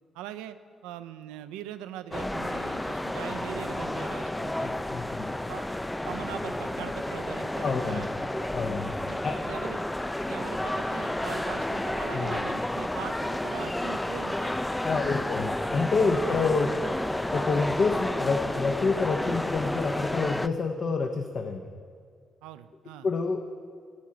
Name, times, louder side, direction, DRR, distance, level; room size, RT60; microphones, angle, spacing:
voice 1, 0.1-0.6 0.8-4.8 5.5-5.7 6.0-8.3 9.1-9.9 10.3-14.5 14.9-15.4 16.2-16.5 22.4-23.1, right 11 dB, 80° right, 11 dB, 0.3 m, -41 dB
sound 1, 2.1-20.5, left 1 dB, 10° left, 0.3 m, -31 dB
voice 2, 4.5-5.4 7.6-8.1 8.5-9.0 9.2-9.4 12.1-12.4 14.8-16.8 17.3-21.7 23.0-23.4, left 4 dB, 50° left, 4 dB, 0.6 m, -28 dB
10.5 x 4.5 x 7.4 m, 2.1 s
hypercardioid pair, 45°, 0 cm